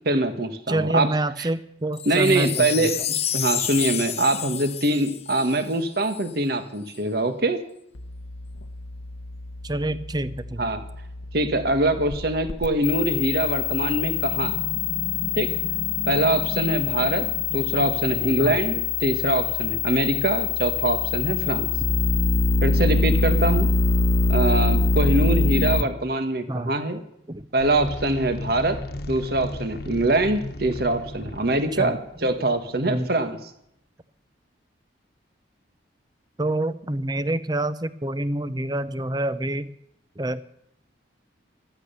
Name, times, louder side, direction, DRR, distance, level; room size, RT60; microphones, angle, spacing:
voice 1, 0.0-1.5 2.0-7.6 10.6-10.8 11.3-14.6 15.4-15.5 16.1-21.7 22.6-23.7 24.3-27.0 27.5-28.8 29.1-33.5, right 2 dB, 55° right, 9 dB, 1.6 m, -24 dB
voice 2, 0.7-2.9 9.6-10.6 18.2-18.6 26.5-26.8 27.3-27.4 31.8-31.9 32.9-33.1 36.4-39.7 40.2-40.4, right 1 dB, 20° right, 14 dB, 0.7 m, -27 dB
Wind chime, 1.9-6.3 6.9-7.0, left 10 dB, 35° left, 0.8 m, -30 dB
sound 1, 8.0-25.8, left 4 dB, 90° left, 1.0 m, -25 dB
sound 2, 27.6-32.8, left 1 dB, 55° left, 1.3 m, -36 dB
14.5 x 12.5 x 6.9 m, 0.74 s
head